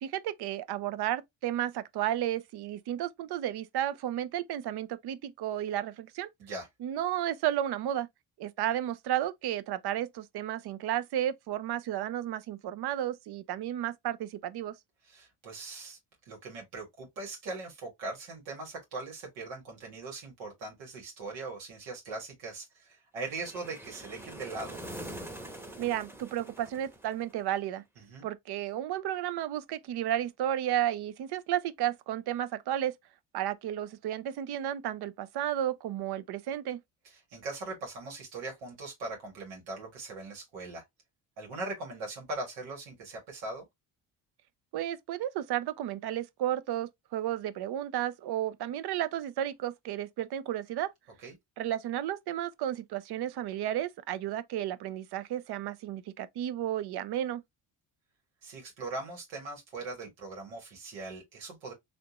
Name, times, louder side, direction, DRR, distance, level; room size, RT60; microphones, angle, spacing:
voice 1, 0.0-6.3 6.8-8.1 8.4-14.7 25.8-27.8 28.2-32.9 33.3-36.8 44.7-50.9 51.6-57.4, right 12 dB, 60° right, 0.6 m, -33 dB
voice 2, 15.0-16.0 16.2-24.8 28.0-28.2 37.0-40.8 41.4-43.6 51.2-51.3 58.4-61.7, right 3 dB, 85° right, 1.7 m, -40 dB
sound 1, 23.3-27.5, right 1 dB, 5° right, 0.9 m, -44 dB
3.4 x 2.4 x 2.8 m
supercardioid pair, 65°, 46 cm